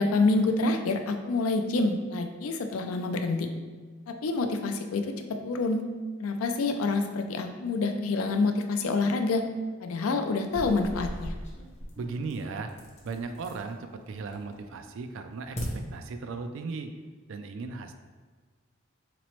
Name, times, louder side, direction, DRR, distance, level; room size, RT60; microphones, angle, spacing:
voice 1, 0.0-3.5 4.1-5.8 6.2-9.4 9.8-11.3, left 3 dB, 80° left, 6 dB, 0.4 m, -27 dB
sound 1, 10.5-13.7 14.1-14.6 15.0-15.7, equal, 30° left, 0.6 m, -39 dB
voice 2, 12.0-12.7 13.0-15.6 15.9-16.9 17.3-17.9, right 4 dB, 60° right, 7 dB, 0.3 m, -36 dB
4.0 x 3.0 x 3.0 m, 1.4 s
head